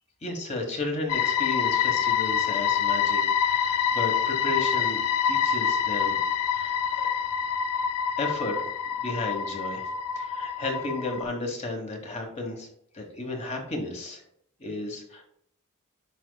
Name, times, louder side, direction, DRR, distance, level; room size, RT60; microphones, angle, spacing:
voice 1, 0.2-6.2 6.5-6.8 8.2-8.6 9.0-9.8 10.1-12.7 12.9-14.2 14.6-15.3, left 2 dB, 30° left, 3 dB, 1.3 m, -33 dB
sound 1, 1.1-11.2, left 8 dB, 80° left, 0.4 m, -26 dB
10.0 x 5.2 x 2.3 m, 0.67 s
head